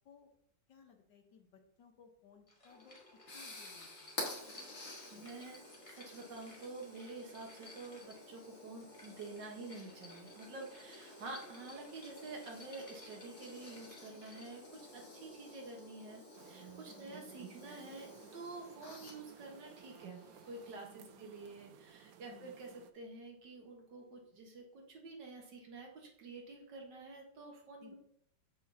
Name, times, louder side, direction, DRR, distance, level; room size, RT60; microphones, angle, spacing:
voice 1, 0.7-3.0 3.3-4.3 5.1-5.3 16.9-17.3 21.1-21.3 22.3-22.5 27.8-27.9, left 6 dB, 70° left, 4 dB, 1.6 m, -61 dB
sound 1, 2.5-14.7, left 2 dB, 20° left, 1.2 m, -59 dB
sound 2, 2.7-20.7, left 2 dB, 45° left, 1.9 m, -51 dB
voice 2, 5.1-5.6 5.9-27.9, right 3 dB, 65° right, 0 dB, 1.9 m, -49 dB
sound 3, 16.3-22.9, right 10 dB, 85° right, 0.7 m, -57 dB
7.5 x 6.2 x 2.8 m, 0.70 s
omnidirectional pair, 2.1 m